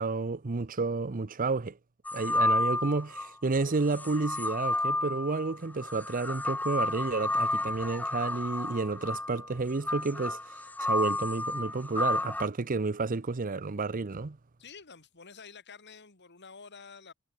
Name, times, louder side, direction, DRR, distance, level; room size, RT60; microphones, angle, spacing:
voice 1, 0.0-1.8 2.1-14.4, right 3 dB, 40° right, 0.7 m, -31 dB
sound 1, 2.1-3.3 3.9-12.5, left 2 dB, 5° left, 0.4 m, -31 dB
voice 2, 14.6-17.1, left 5 dB, 55° left, 3.2 m, -49 dB
head